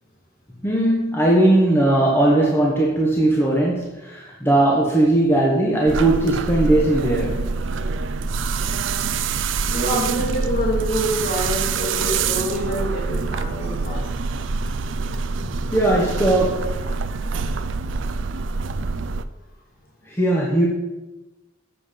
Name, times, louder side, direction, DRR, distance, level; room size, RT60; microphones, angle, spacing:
voice 1, 0.6-7.4 15.7-16.7 20.1-20.7, right 1 dB, 15° left, -3 dB, 1.3 m, -18 dB
sound 1, 5.9-19.2, right 4 dB, 85° right, 0.5 m, -25 dB
voice 2, 9.7-14.3 14.7-14.8 15.4-15.5 17.4-17.5, equal, 50° left, -4 dB, 3.2 m, -26 dB
7.6 x 7.5 x 5.2 m, 1.1 s
head